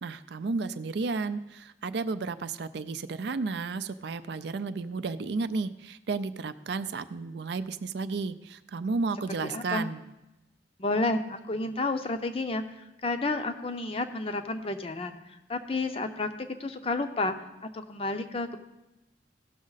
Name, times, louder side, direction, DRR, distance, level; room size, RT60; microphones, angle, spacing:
voice 1, 0.0-10.0, right 4 dB, 60° right, 12 dB, 0.4 m, -32 dB
voice 2, 9.4-9.9 10.8-12.6 13.0-15.2 15.5-17.4 17.6-18.6, left 2 dB, 30° left, 8 dB, 0.6 m, -30 dB
16.5 x 6.3 x 4.0 m, 0.96 s
head